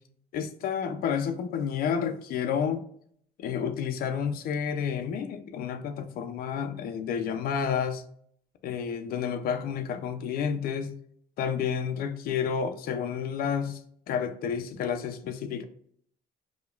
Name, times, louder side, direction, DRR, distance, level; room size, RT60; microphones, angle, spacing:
voice 1, 0.3-2.8 3.4-8.0 8.6-11.0 11.4-13.8 14.1-15.6, left 7 dB, 65° left, 0.5 m, -30 dB
4.9 x 2.3 x 2.3 m
cardioid pair, 110°, 17 cm